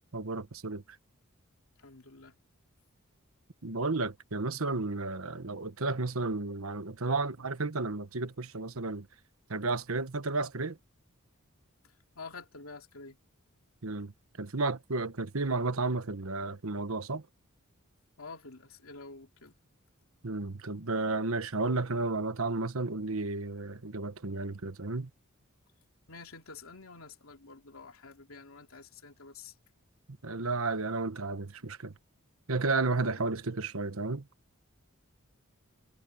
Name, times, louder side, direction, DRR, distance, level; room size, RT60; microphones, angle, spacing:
voice 1, 0.1-0.8 3.6-9.1 9.5-10.8 13.8-14.1 14.4-17.2 20.2-25.1 30.2-31.9 32.5-34.2, right 3 dB, 75° right, 1.3 m, -32 dB
voice 2, 1.8-2.3 12.1-13.2 18.2-19.6 26.1-29.5, left 4 dB, 80° left, 2.9 m, -48 dB
head